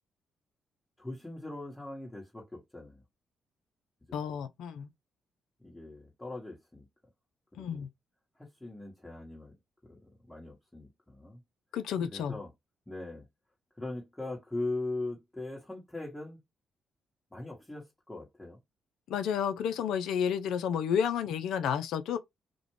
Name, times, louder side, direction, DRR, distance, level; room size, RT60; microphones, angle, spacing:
voice 1, 1.0-3.0 4.1-4.2 5.6-6.8 7.5-7.9 8.4-9.5 9.9-11.4 12.1-12.5 12.9-13.2 13.8-16.4 17.3-18.6, left 2 dB, 10° left, 1.1 m, -40 dB
voice 2, 4.1-4.9 7.6-7.9 11.7-12.4 19.1-22.2, left 8 dB, 70° left, 0.3 m, -31 dB
2.4 x 2.1 x 3.1 m
hypercardioid pair, 45°, 0 cm